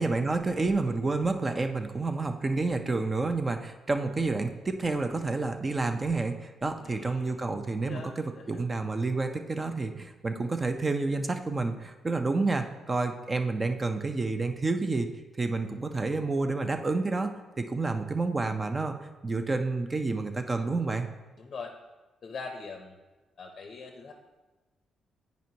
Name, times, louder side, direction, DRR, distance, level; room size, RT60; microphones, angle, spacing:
voice 1, 0.0-15.1 15.4-18.9 19.2-21.1, right 3 dB, 20° right, 7 dB, 0.4 m, -29 dB
voice 2, 6.8-7.4 7.8-8.6 21.4-21.8 22.2-23.0 23.4-24.1, left 4 dB, 40° left, 3 dB, 0.6 m, -42 dB
9.0 x 5.1 x 2.8 m, 1.2 s
cardioid pair, 140°, 0 cm